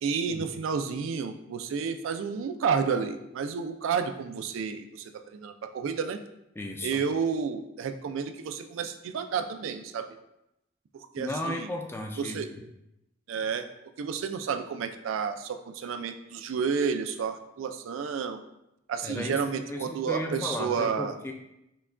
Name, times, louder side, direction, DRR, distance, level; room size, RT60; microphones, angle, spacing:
voice 1, 0.0-6.2 6.8-10.1 10.9-11.7 12.2-12.5 13.3-13.7 14.0-18.4 18.9-21.1, right 6 dB, 80° right, 8 dB, 0.3 m, -31 dB
voice 2, 6.6-7.0 11.2-12.6 19.0-19.4 19.7-21.3, left 1 dB, 10° left, 2 dB, 0.3 m, -35 dB
5.7 x 2.2 x 2.4 m, 0.86 s
head